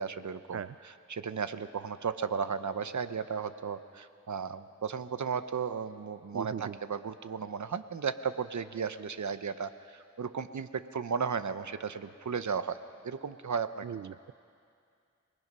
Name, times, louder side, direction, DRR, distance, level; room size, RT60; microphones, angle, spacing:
voice 1, 0.0-12.8 13.0-13.9, right 6 dB, 70° right, 11 dB, 0.9 m, -35 dB
voice 2, 6.3-6.8 13.8-14.3, right 8 dB, 55° right, 14 dB, 0.4 m, -38 dB
28.5 x 19.5 x 5.5 m, 2.3 s
wide cardioid pair, 65°, 30 cm